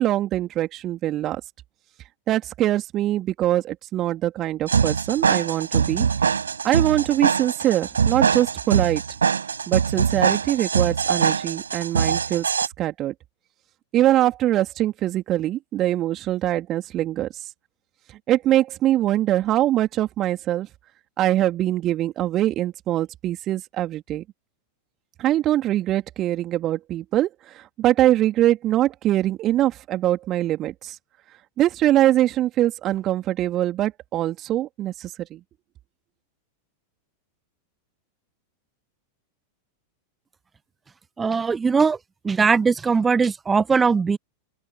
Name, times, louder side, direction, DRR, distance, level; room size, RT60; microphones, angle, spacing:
voice 1, 0.0-1.4 2.3-6.1 6.6-9.0 9.7-12.5 12.8-13.1 13.9-17.3 18.3-20.7 21.2-24.2 25.2-31.0 31.6-35.4, right 13 dB, 35° right, 3.5 m, -23 dB
sound 1, 4.7-12.7, right 6 dB, 70° right, 5.3 m, -23 dB
voice 2, 41.2-42.0 42.2-44.2, right 5 dB, 15° right, 1.2 m, -20 dB
open air
figure-of-eight pair, 90°, 0 cm